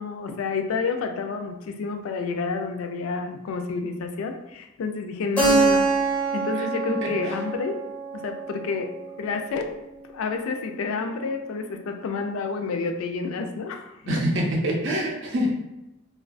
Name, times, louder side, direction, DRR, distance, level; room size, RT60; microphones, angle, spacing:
voice 1, 0.0-5.9 6.3-7.8 8.1-8.9 9.2-9.7 10.1-14.3 15.4-15.5, left 4 dB, 80° left, 5 dB, 0.3 m, -29 dB
Keyboard (musical), 5.4-9.9, right 3 dB, 5° left, 0.6 m, -25 dB
voice 2, 7.0-7.3 14.1-15.5, equal, 60° right, -2 dB, 0.5 m, -25 dB
2.3 x 2.2 x 2.4 m, 0.96 s
head